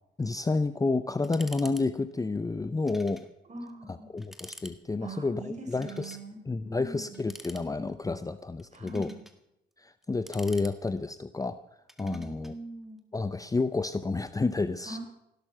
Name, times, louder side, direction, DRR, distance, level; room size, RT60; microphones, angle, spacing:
voice 1, 0.2-3.3 3.9-6.2 6.5-9.1 9.8-11.6 12.0-12.5 13.1-15.0, left 3 dB, 15° left, 13 dB, 0.7 m, -30 dB
sound 1, 1.2-1.9 2.1-2.2 2.8-3.3 3.7-3.8 4.2-4.8 5.7-6.2 7.1-8.0 8.6-9.4 10.0-11.2 11.9-12.5, equal, ahead, 1.8 m, -48 dB
voice 2, 3.5-4.1 5.0-7.2 8.7-9.2 12.1-13.0 14.9-15.0, right 2 dB, 35° right, 3 dB, 5.6 m, -42 dB
17.0 x 12.0 x 5.8 m, 0.83 s
cardioid pair, 90°, 20 cm